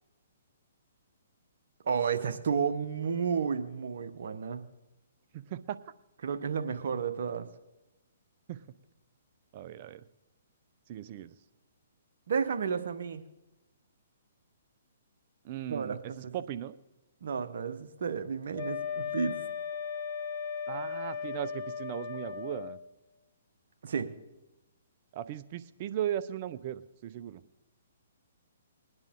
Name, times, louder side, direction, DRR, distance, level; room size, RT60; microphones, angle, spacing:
voice 1, 1.8-4.6 6.2-7.5 12.3-13.2 15.7-16.0 16.2-16.3 17.2-19.4 23.8-24.1, right 6 dB, 65° right, 8 dB, 1.1 m, -32 dB
voice 2, 5.3-5.9 8.5-8.6 9.5-10.0 10.9-11.3 15.4-16.7 20.7-22.8 25.1-27.4, right 11 dB, 40° right, 13 dB, 0.6 m, -37 dB
Wind instrument woodwind instrument, 18.5-22.8, left 7 dB, 45° left, 0.9 m, -36 dB
20.5 x 9.6 x 3.7 m, 0.97 s
hypercardioid pair, 135°, 0 cm